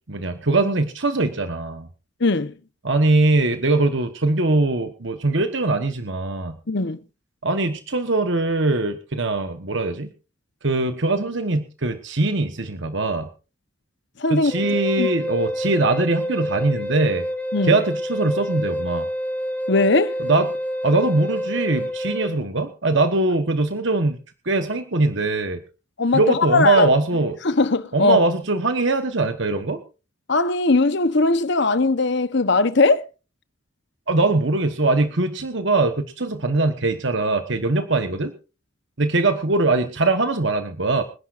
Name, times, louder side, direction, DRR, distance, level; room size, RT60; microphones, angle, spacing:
voice 1, 0.1-1.9 2.8-6.6 7.4-10.1 10.6-13.3 14.3-17.3 17.6-19.1 20.2-20.5 20.8-24.2 24.4-25.6 26.1-27.4 27.9-29.8 34.1-38.3 39.0-41.0, right 2 dB, 60° right, 1.3 m, -21 dB
voice 2, 2.2-2.5 6.7-7.0 14.2-15.1 17.5-17.8 19.7-20.2 26.0-26.9 27.4-28.3 30.3-33.0, left 3 dB, 55° left, 1.0 m, -20 dB
Wind instrument woodwind instrument, 14.5-22.4, equal, 10° left, 1.5 m, -28 dB
26.5 x 11.0 x 2.6 m
head